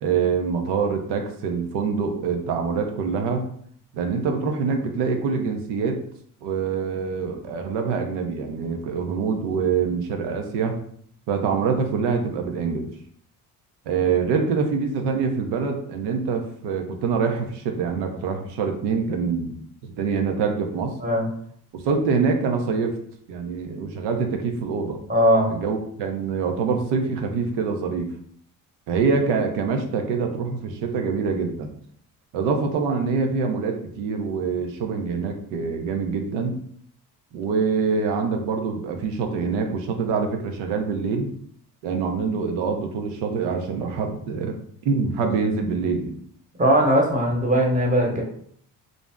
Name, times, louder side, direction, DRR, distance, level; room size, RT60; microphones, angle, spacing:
voice 1, 0.0-3.5 3.9-6.0 6.4-10.8 11.3-12.9 13.9-19.6 19.8-20.9 21.7-23.0 23.3-25.0 25.5-28.1 28.9-31.7 32.3-36.6 37.3-41.3 41.8-44.6 44.8-46.2, right 5 dB, 85° right, 4 dB, 0.6 m, -25 dB
voice 2, 25.1-25.5 46.6-48.2, equal, 20° right, -1 dB, 0.9 m, -19 dB
2.5 x 2.0 x 3.4 m, 0.64 s
cardioid pair, 80°, 39 cm